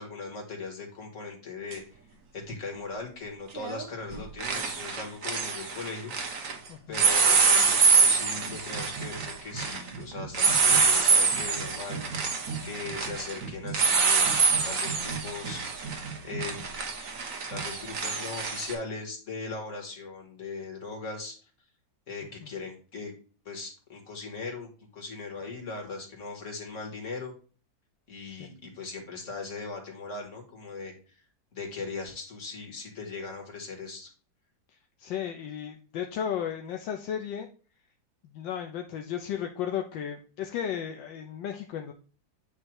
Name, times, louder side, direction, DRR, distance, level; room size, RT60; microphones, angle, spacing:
voice 1, 0.0-2.0 2.3-6.1 6.9-12.0 12.6-16.8 17.5-21.4 22.1-23.1 23.5-27.3 28.1-30.9 31.5-34.1, left 4 dB, 40° left, 1 dB, 2.4 m, -39 dB
sound 1, 1.7-1.8 3.5-3.8 4.1-6.5 6.9-18.7, right 5 dB, 45° right, 1.4 m, -25 dB
voice 2, 6.7-7.0 22.4-22.5 28.3-28.5 35.0-37.5 38.3-41.9, left 9 dB, 75° left, 4 dB, 1.4 m, -34 dB
9.0 x 3.2 x 4.6 m, 0.38 s
omnidirectional pair, 2.1 m